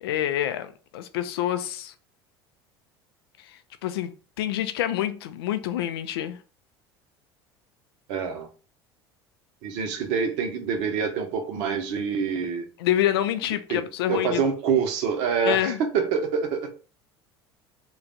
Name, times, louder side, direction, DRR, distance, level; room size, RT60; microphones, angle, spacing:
voice 1, 0.0-1.9 3.4-6.4 12.8-14.4 15.4-15.8, left 12 dB, 65° left, 0.4 m, -27 dB
voice 2, 8.1-8.5 9.6-12.7 13.7-13.8 14.1-16.7, right 6 dB, 55° right, 0.8 m, -26 dB
3.2 x 2.4 x 3.9 m
figure-of-eight pair, 70°, 14 cm